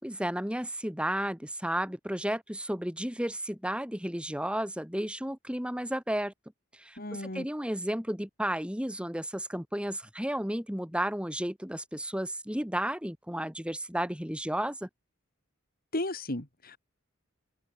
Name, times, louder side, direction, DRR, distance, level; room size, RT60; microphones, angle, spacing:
voice 1, 0.0-6.3 6.7-14.9, right 1 dB, 5° right, 3.5 m, -33 dB
voice 2, 7.0-7.5 15.9-16.8, left 1 dB, 45° left, 3.6 m, -34 dB
open air
head